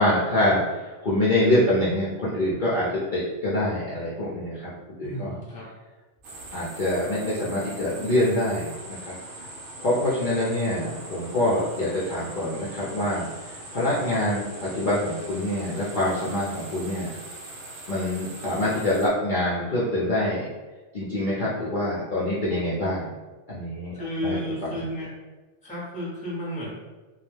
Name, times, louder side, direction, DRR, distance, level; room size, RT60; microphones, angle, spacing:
voice 1, 0.0-4.7 5.0-5.3 6.5-9.1 9.8-17.1 17.9-20.5 20.9-23.1 23.5-23.9 24.2-24.9, left 1 dB, 55° left, -8 dB, 0.6 m, -25 dB
voice 2, 5.0-5.7 23.9-25.1 25.6-26.8, left 1 dB, 10° left, -6 dB, 0.6 m, -32 dB
sound 1, 6.2-19.1, right 2 dB, 75° right, 0.9 m, -41 dB
2.3 x 2.1 x 3.1 m, 1.2 s
omnidirectional pair, 1.3 m